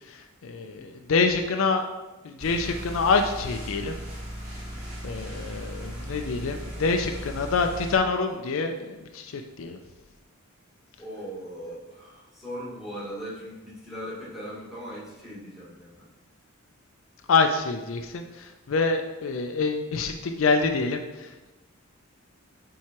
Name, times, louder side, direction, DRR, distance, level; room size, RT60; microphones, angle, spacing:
voice 1, 0.1-1.8 2.2-3.9 5.0-9.8 17.3-21.5, left 4 dB, 65° left, 5 dB, 0.4 m, -26 dB
sound 1, 2.4-7.9, equal, 35° right, 1.8 m, -37 dB
voice 2, 11.0-16.1, equal, ahead, -8 dB, 1.8 m, -39 dB
7.3 x 4.6 x 3.0 m, 1.1 s
head